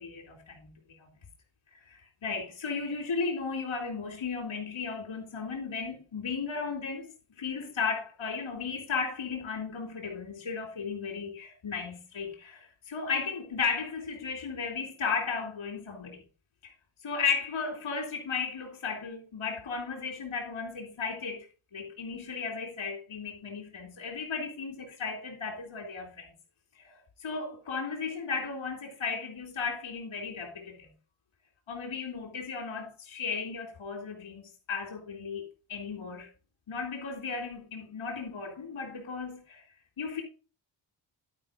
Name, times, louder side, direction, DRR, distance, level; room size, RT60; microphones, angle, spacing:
voice 1, 0.0-1.1 1.9-16.2 16.6-16.7 17.0-21.5 21.7-26.3 26.8-30.9 31.7-36.3 36.7-39.6 40.0-40.2, left 5 dB, 70° left, 3.2 m, -35 dB
11.5 x 5.2 x 5.0 m
cardioid pair, 95°, 49 cm